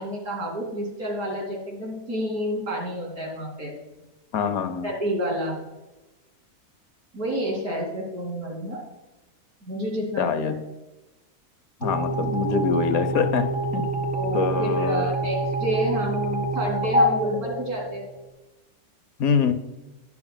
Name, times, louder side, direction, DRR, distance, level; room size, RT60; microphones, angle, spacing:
voice 1, 0.0-3.7 4.8-5.6 7.1-8.8 9.6-10.5 12.5-12.6 14.1-18.0, equal, 90° right, 0 dB, 2.9 m, -29 dB
voice 2, 4.3-4.9 10.2-10.6 11.8-13.9 14.3-15.1 19.2-19.5, left 6 dB, 75° left, 10 dB, 1.2 m, -24 dB
sound 1, 11.8-18.3, right 1 dB, 5° right, 1.0 m, -26 dB
12.0 x 9.5 x 2.2 m, 1.0 s
omnidirectional pair, 1.5 m